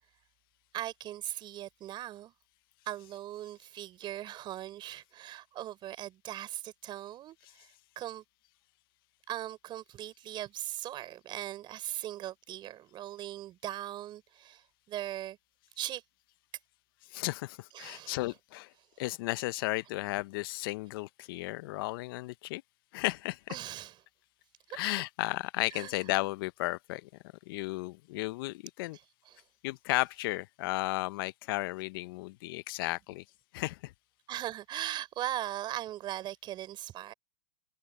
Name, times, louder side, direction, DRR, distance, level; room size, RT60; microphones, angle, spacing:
voice 1, 0.7-2.3 2.9-7.7 8.0-8.2 9.3-15.4 15.8-16.0 17.7-18.3 23.5-24.0 24.7-24.8 25.7-26.0 28.9-29.4 34.3-37.1, right 13 dB, 35° right, 4.1 m, -39 dB
voice 2, 17.1-18.7 19.0-22.6 22.9-23.4 24.7-27.1 27.5-29.0 29.6-33.2 33.5-33.9, left 20 dB, 55° left, 0.7 m, -34 dB
hypercardioid pair, 115°, 14 cm